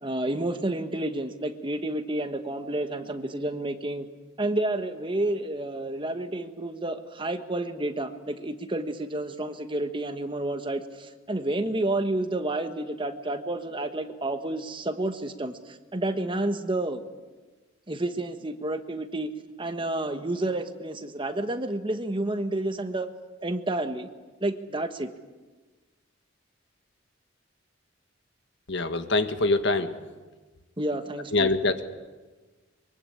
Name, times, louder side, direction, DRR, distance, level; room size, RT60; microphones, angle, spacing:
voice 1, 0.0-4.1 4.4-17.0 17.9-19.3 19.6-23.1 23.4-24.1 24.4-25.1 30.8-31.5, right 1 dB, 25° right, 8 dB, 1.4 m, -30 dB
voice 2, 28.7-29.9 31.3-31.8, left 2 dB, 65° left, 9 dB, 1.6 m, -24 dB
24.0 x 23.5 x 8.6 m, 1.3 s
head